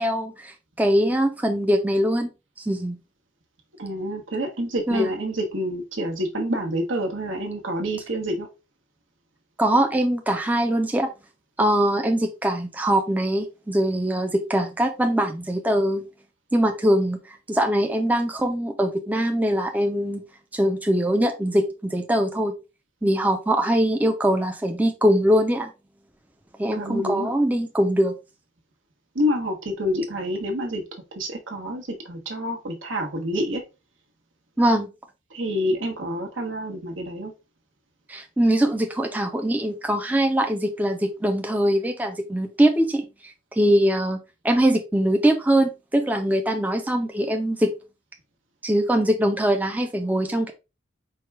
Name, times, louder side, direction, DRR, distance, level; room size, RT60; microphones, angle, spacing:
voice 1, 0.0-2.3 2.6-3.0 4.9-5.1 9.6-11.1 11.6-16.1 16.5-20.2 20.5-22.5 23.0-25.7 26.6-28.1 34.6-34.9 38.1-44.2 44.4-47.7 48.6-50.5, right 1 dB, 10° right, 0.4 m, -22 dB
voice 2, 3.8-8.5 26.7-27.3 29.1-30.8 31.1-33.6 35.3-37.3, equal, 80° right, 1.2 m, -27 dB
4.7 x 2.2 x 4.6 m
head